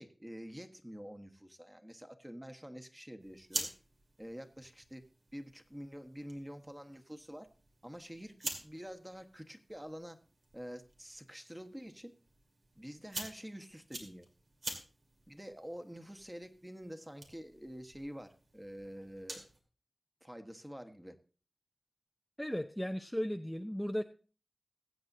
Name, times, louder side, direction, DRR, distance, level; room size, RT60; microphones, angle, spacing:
voice 1, 0.0-3.7 4.2-5.1 5.3-7.5 7.8-10.2 10.5-12.1 12.7-14.2 15.3-19.5 20.2-21.2, equal, 10° right, 7 dB, 1.3 m, -47 dB
sound 1, 3.2-19.6, right 2 dB, 75° right, 2.3 m, -48 dB
voice 2, 22.4-24.0, equal, 5° left, 5 dB, 0.6 m, -36 dB
20.5 x 8.0 x 2.7 m, 0.38 s
wide cardioid pair, 55°, 0 cm